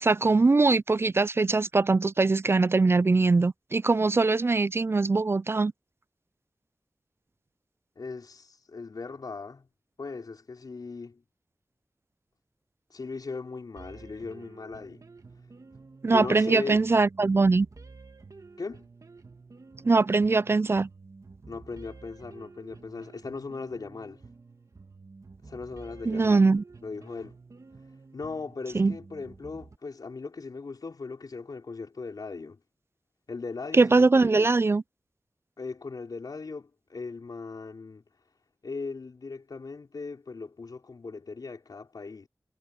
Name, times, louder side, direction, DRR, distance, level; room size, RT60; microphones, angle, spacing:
voice 1, 0.0-5.7 16.0-17.7 19.8-20.9 26.1-26.6 28.7-28.9 33.7-34.8, right 3 dB, 40° right, 0.3 m, -22 dB
voice 2, 8.0-9.7 10.0-11.2 12.9-15.1 16.1-16.8 18.6-18.9 21.5-24.2 25.4-26.4 26.8-27.4 28.1-32.6 33.3-34.5 35.6-38.0 38.6-42.3, left 4 dB, 80° left, 4.7 m, -38 dB
sound 1, 13.8-29.8, right 4 dB, 60° right, 2.3 m, -50 dB
wide cardioid pair, 70°, 7 cm